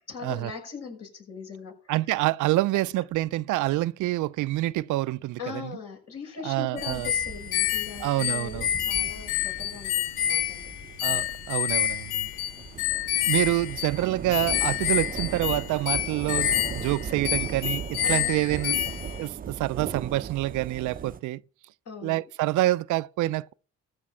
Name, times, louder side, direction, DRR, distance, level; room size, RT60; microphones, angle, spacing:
voice 1, 0.0-1.9 5.4-10.6 18.0-18.4 21.8-22.2, left 6 dB, 55° left, 6.2 m, -40 dB
voice 2, 1.9-5.8 6.4-7.1 8.0-8.7 11.0-12.3 13.3-18.8 19.2-21.4 22.0-23.5, right 17 dB, 80° right, 0.5 m, -27 dB
sound 1, 6.8-19.2, left 11 dB, 85° left, 1.0 m, -28 dB
sound 2, 6.9-21.2, right 7 dB, 30° right, 0.5 m, -39 dB
14.5 x 5.2 x 7.0 m
cardioid pair, 90°, 30 cm